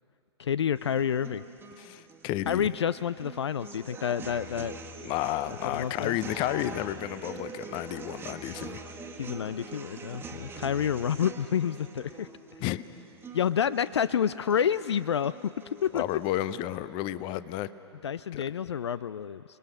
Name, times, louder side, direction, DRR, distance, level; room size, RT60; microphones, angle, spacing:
voice 1, 0.4-1.4 2.5-4.8 5.6-6.2 9.2-12.3 13.3-15.5 15.8-16.0 18.0-19.4, left 8 dB, 65° left, 16 dB, 0.4 m, -29 dB
sound 1, 0.8-16.8, right 4 dB, 15° right, 1.5 m, -44 dB
voice 2, 1.8-2.7 5.0-8.8 12.6-12.8 15.9-17.7 18.3-18.4, left 14 dB, 30° left, 16 dB, 0.7 m, -32 dB
30.0 x 20.5 x 6.4 m, 2.9 s
figure-of-eight pair, 105°, 15 cm